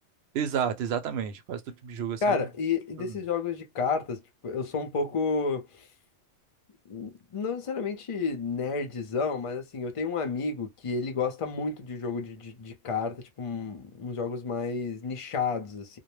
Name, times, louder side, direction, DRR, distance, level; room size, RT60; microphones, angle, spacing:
voice 1, 0.3-2.4 3.0-3.1, right 8 dB, 65° right, 0.8 m, -31 dB
voice 2, 2.2-5.9 6.9-16.0, left 4 dB, 40° left, 0.4 m, -31 dB
2.2 x 2.0 x 3.0 m
omnidirectional pair, 1.3 m